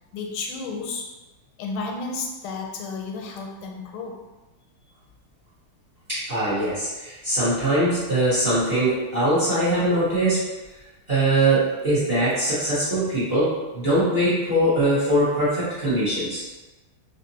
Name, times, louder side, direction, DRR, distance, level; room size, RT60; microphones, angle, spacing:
voice 1, 0.1-1.1 1.6-4.2 15.4-15.5, left 4 dB, 90° left, 1 dB, 1.4 m, -32 dB
voice 2, 6.1-10.4 11.1-16.4, right 1 dB, 40° right, -11 dB, 1.0 m, -22 dB
3.8 x 2.5 x 2.7 m, 1.1 s
omnidirectional pair, 2.2 m